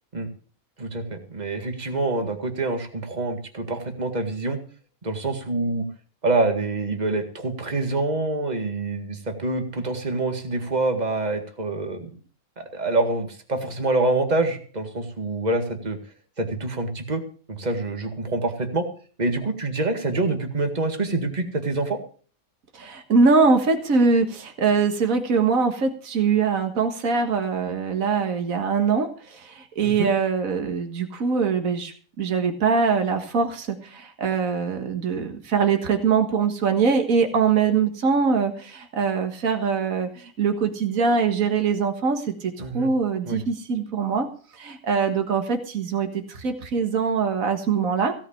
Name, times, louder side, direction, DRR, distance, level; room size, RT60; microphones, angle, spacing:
voice 1, 0.8-4.6 5.0-5.9 6.2-12.1 12.6-16.0 16.4-17.2 17.5-18.9 19.2-22.0 29.8-30.1 42.6-42.9 43.3-43.4, right 2 dB, 30° right, 5 dB, 2.0 m, -26 dB
voice 2, 22.7-44.3 44.5-48.1, right 5 dB, 65° right, 5 dB, 2.0 m, -23 dB
16.5 x 5.9 x 8.6 m, 0.42 s
omnidirectional pair, 1.5 m